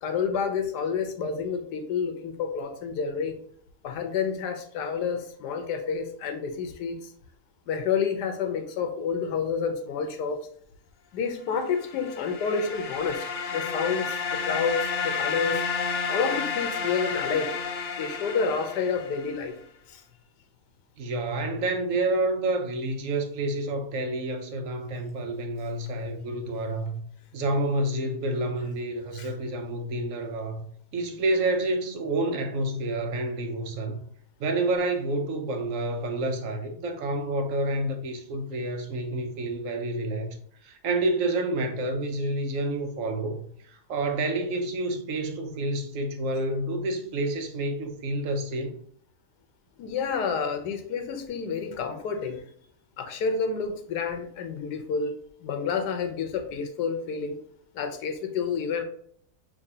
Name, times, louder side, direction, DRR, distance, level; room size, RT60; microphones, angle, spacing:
voice 1, 0.0-3.4 3.8-7.0 7.7-10.4 11.1-15.6 16.1-17.5 18.0-19.5 19.9-20.0 29.2-29.3 49.8-52.4 53.0-55.1 55.4-57.4 57.7-58.8, left 5 dB, 90° left, 1.3 m, -29 dB
sound 1, 11.7-19.4, left 5 dB, 55° left, 0.9 m, -31 dB
voice 2, 21.0-27.0 27.3-34.0 34.4-40.4 40.6-48.8, right 2 dB, 60° right, 1.0 m, -29 dB
5.7 x 2.9 x 2.7 m
omnidirectional pair, 1.7 m